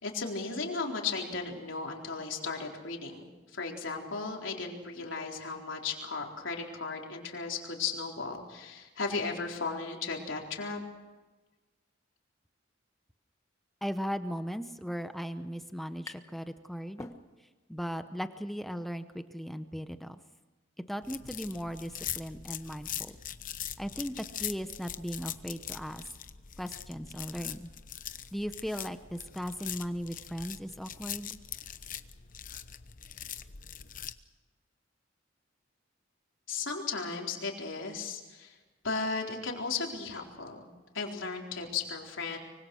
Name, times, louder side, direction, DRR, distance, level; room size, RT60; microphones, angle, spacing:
voice 1, 0.0-10.8 36.5-38.5 38.8-40.7 40.9-42.4, left 4 dB, 75° left, 1 dB, 4.2 m, -35 dB
voice 2, 13.8-17.1 17.7-20.2 20.9-23.2 23.8-26.0 26.6-27.7 28.3-31.4, equal, ahead, 9 dB, 0.8 m, -37 dB
sound 1, 16.0-16.5 16.8-17.7, left 2 dB, 15° left, 1.3 m, -48 dB
sound 2, 21.0-34.1, left 10 dB, 45° left, 0.9 m, -42 dB
24.5 x 24.5 x 6.4 m, 1.2 s
head